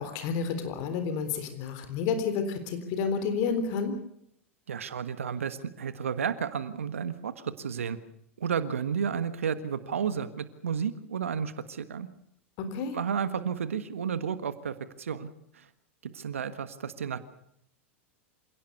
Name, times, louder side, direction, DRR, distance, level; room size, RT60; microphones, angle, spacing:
voice 1, 0.0-4.0 12.6-13.0, left 5 dB, 50° left, 9 dB, 3.8 m, -30 dB
voice 2, 4.7-8.0 8.4-12.1 12.9-15.3 15.5-15.6 16.0-17.2, right 7 dB, 80° right, 12 dB, 1.5 m, -32 dB
27.0 x 17.5 x 6.8 m, 0.73 s
figure-of-eight pair, 90°, 7 cm